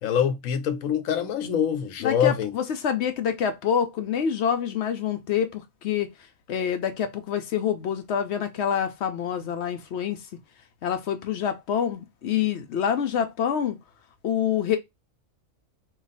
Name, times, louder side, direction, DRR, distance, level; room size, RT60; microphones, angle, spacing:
voice 1, 0.0-2.5, left 8 dB, 85° left, 1.1 m, -25 dB
voice 2, 2.0-6.1 6.5-10.2 10.8-13.8 14.2-14.8, left 8 dB, 65° left, 0.8 m, -26 dB
3.0 x 2.3 x 3.9 m
omnidirectional pair, 1.4 m